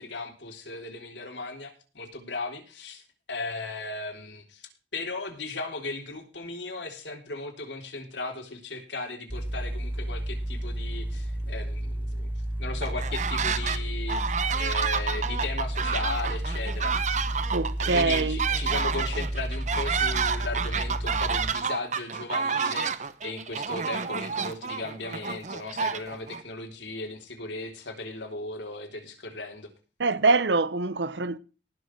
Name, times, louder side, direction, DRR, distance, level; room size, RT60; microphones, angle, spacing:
voice 1, 0.0-3.0 3.3-12.3 12.6-16.9 17.8-29.7, left 3 dB, 85° left, 3.7 m, -36 dB
sound 1, 9.3-21.5, right 1 dB, 10° right, 0.6 m, -31 dB
sound 2, 12.8-13.8 14.1-26.4, right 6 dB, 40° right, 0.9 m, -29 dB
voice 2, 17.5-18.4 30.0-31.4, right 3 dB, 80° right, 0.9 m, -24 dB
19.0 x 6.6 x 4.7 m
head